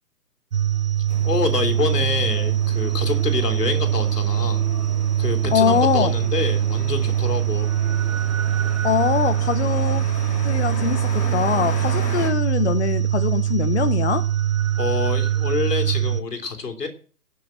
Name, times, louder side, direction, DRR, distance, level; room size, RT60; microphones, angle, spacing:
sound 1, 0.5-16.2, right 11 dB, 55° right, 0.8 m, -22 dB
sound 2, 1.1-12.3, left 2 dB, 15° left, 3.2 m, -36 dB
voice 1, 1.2-4.6 5.2-7.7 8.6-8.9 14.8-16.9, left 4 dB, 70° left, 6 dB, 3.3 m, -26 dB
voice 2, 5.5-6.1 8.8-10.0 10.4-14.2, left 7 dB, 45° left, 12 dB, 0.8 m, -22 dB
17.5 x 6.3 x 7.6 m, 0.43 s
figure-of-eight pair, 135°, 49 cm